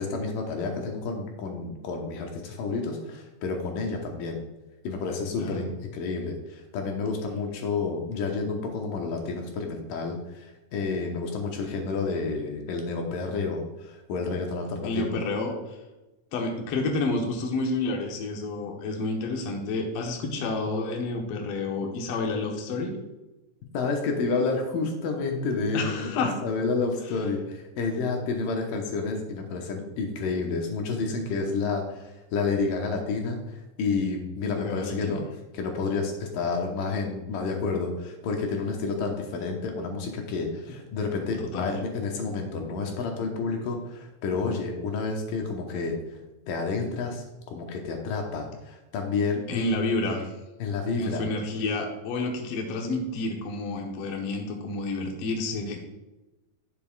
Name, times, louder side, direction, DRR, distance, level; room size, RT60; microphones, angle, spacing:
voice 1, 0.0-4.4 4.8-15.1 23.7-35.2 35.5-46.0 46.5-47.2 47.5-49.8 50.6-51.2, left 4 dB, 80° left, 2 dB, 2.7 m, -30 dB
voice 2, 14.8-15.6 16.3-23.0 25.7-26.4 34.4-35.3 41.5-41.8 49.5-50.3 51.0-55.8, left 3 dB, 60° left, 1 dB, 1.7 m, -29 dB
10.5 x 6.9 x 2.4 m, 1.1 s
omnidirectional pair, 3.9 m